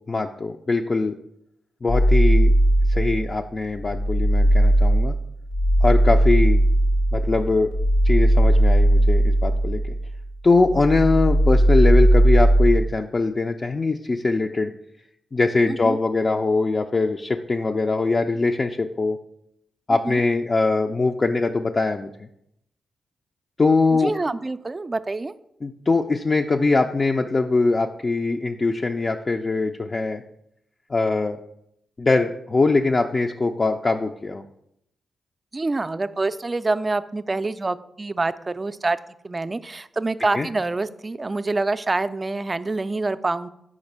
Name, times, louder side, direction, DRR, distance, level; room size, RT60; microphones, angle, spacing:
voice 1, 0.1-1.1 1.8-2.5 2.9-5.1 5.8-6.6 7.1-7.7 8.0-9.9 10.4-14.7 15.3-19.2 19.9-22.1 23.6-24.1 25.6-30.2 30.9-31.4 32.0-34.5 40.3-40.5, left 3 dB, 40° left, 3 dB, 0.4 m, -22 dB
sound 1, 1.9-3.3 3.7-10.3 10.6-12.9, right 1 dB, 80° left, 0.9 m, -18 dB
voice 2, 15.7-16.0 20.0-20.2 23.9-25.3 35.5-39.0 39.2-43.5, right 3 dB, 30° right, 13 dB, 0.3 m, -26 dB
4.9 x 4.3 x 5.4 m, 0.77 s
cardioid pair, 55°, 0 cm